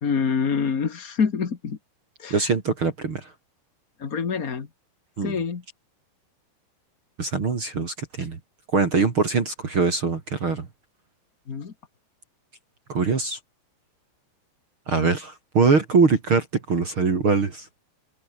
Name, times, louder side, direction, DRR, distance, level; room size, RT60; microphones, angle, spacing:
voice 1, 0.0-1.8 2.2-2.5 4.0-4.7 5.2-5.6 11.5-11.7, left 6 dB, 80° left, 0.7 m, -26 dB
voice 2, 2.3-3.3 5.2-5.4 7.2-8.4 8.7-10.7 12.9-13.4 14.9-17.7, right 4 dB, 35° right, 2.8 m, -22 dB
open air
omnidirectional pair, 4.7 m